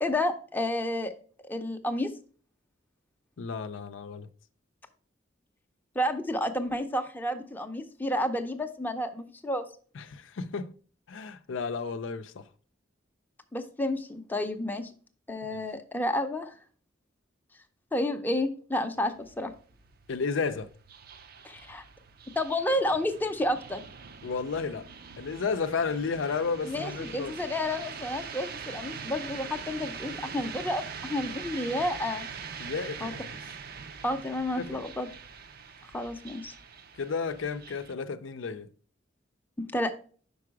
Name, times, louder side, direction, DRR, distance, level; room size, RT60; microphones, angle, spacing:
voice 1, 0.0-1.1 1.4-2.1 5.9-9.6 13.5-14.9 15.3-16.5 17.9-19.5 21.4-21.8 22.4-23.8 26.6-32.3 33.0-33.1 34.0-35.1 35.9-36.5 39.7-40.0, left 1 dB, 10° left, 0.6 m, -30 dB
voice 2, 3.4-4.3 10.0-10.7 11.1-12.5 20.1-20.7 24.2-24.9 25.2-27.3 32.6-33.4 34.6-34.8 37.0-38.7, left 5 dB, 90° left, 0.5 m, -32 dB
sound 1, 19.0-37.9, right 6 dB, 55° right, 0.6 m, -43 dB
5.4 x 4.8 x 4.6 m
head